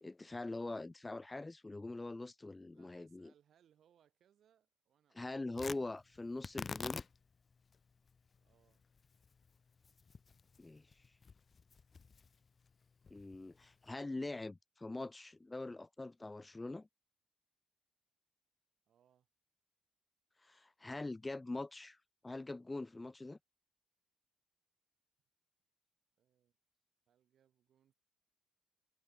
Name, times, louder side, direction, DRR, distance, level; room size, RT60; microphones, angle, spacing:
voice 1, 0.0-3.3 5.1-7.0 10.6-11.0 13.1-16.9 20.4-22.0 22.2-23.4, left 2 dB, 15° left, 0.5 m, -43 dB
voice 2, 2.7-5.5 8.4-8.8 18.9-19.3 26.2-26.5 27.1-27.9, right 9 dB, 65° right, 4.2 m, -73 dB
Tearing, 5.5-13.9, left 5 dB, 35° left, 0.9 m, -50 dB
cardioid pair, 90°, 0 cm